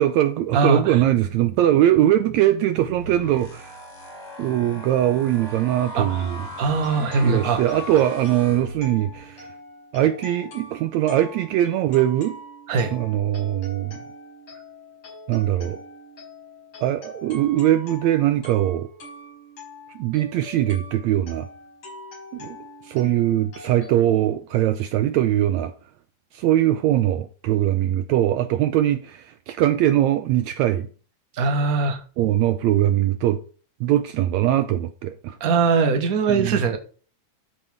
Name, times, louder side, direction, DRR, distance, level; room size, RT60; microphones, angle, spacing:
voice 1, 0.0-3.8 4.4-6.4 7.0-9.5 9.9-12.4 12.9-14.0 15.3-15.8 16.8-18.9 19.9-21.5 22.3-22.6 22.8-25.7 26.3-30.9 32.2-33.4 33.8-35.4 36.3-36.6, right 12 dB, 80° right, 1.7 m, -21 dB
voice 2, 0.5-1.0 6.0-6.1 6.6-7.6 12.7-12.9 31.3-32.0 35.4-36.8, right 4 dB, 40° right, 1.3 m, -21 dB
sound 1, 2.8-9.2, left 1 dB, 75° left, 5.2 m, -38 dB
sound 2, 6.7-24.0, left 1 dB, 60° left, 6.7 m, -43 dB
13.5 x 5.5 x 3.6 m
omnidirectional pair, 3.7 m